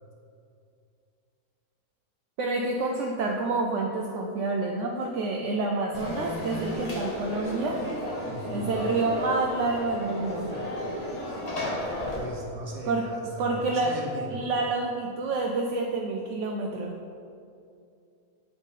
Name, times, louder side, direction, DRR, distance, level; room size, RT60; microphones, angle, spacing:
voice 1, 2.4-7.8 8.5-10.5 12.9-13.1 13.4-13.9 14.3-17.0, right 3 dB, 65° right, 0 dB, 0.8 m, -28 dB
Conversation / Crowd, 5.9-12.2, left 1 dB, 30° left, 1.0 m, -33 dB
voice 2, 8.3-8.8 12.1-14.4, equal, 40° right, -3 dB, 1.5 m, -37 dB
8.1 x 4.0 x 5.4 m, 2.5 s
omnidirectional pair, 1.6 m